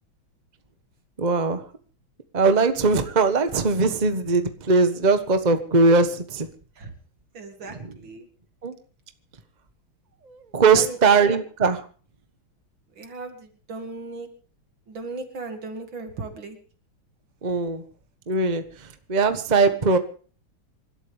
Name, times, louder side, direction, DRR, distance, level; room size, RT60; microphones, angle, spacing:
voice 1, 1.2-1.6 2.3-6.5 7.6-8.0 8.6-8.8 10.2-11.8 17.4-17.8 18.3-20.0, right 4 dB, 25° right, 8 dB, 1.2 m, -20 dB
voice 2, 7.3-8.3 10.7-11.4 13.0-14.3 14.9-16.6, right 3 dB, 70° right, 6 dB, 3.0 m, -37 dB
27.5 x 13.0 x 3.5 m, 0.39 s
omnidirectional pair, 2.2 m